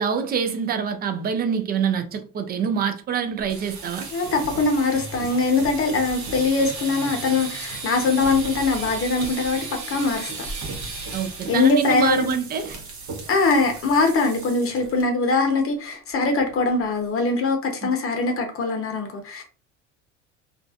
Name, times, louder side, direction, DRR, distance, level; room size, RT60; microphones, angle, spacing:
voice 1, 0.0-4.1 11.1-12.8 17.8-17.9, right 7 dB, 25° right, 0.4 m, -25 dB
sound 1, 3.4-15.0 15.3-15.6 15.9-16.0 16.4-16.8, right 3 dB, 45° right, 1.0 m, -35 dB
voice 2, 4.1-10.3 11.5-12.3 13.3-19.4, left 3 dB, 35° left, 0.8 m, -22 dB
2.4 x 2.4 x 2.3 m
hypercardioid pair, 80°, 38 cm